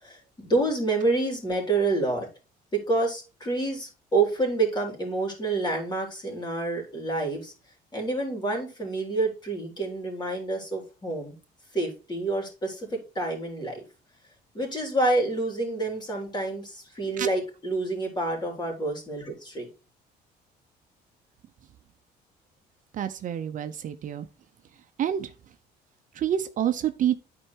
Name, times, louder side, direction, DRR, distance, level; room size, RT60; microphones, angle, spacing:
voice 1, 0.0-2.3 2.7-7.5 7.9-11.4 11.7-13.8 14.5-19.7, right 2 dB, 25° left, 3.9 m, -28 dB
voice 2, 22.9-24.3 25.0-25.3 26.2-27.2, right 10 dB, 50° right, 0.7 m, -27 dB
9.6 x 4.6 x 4.5 m
cardioid pair, 110°, 17 cm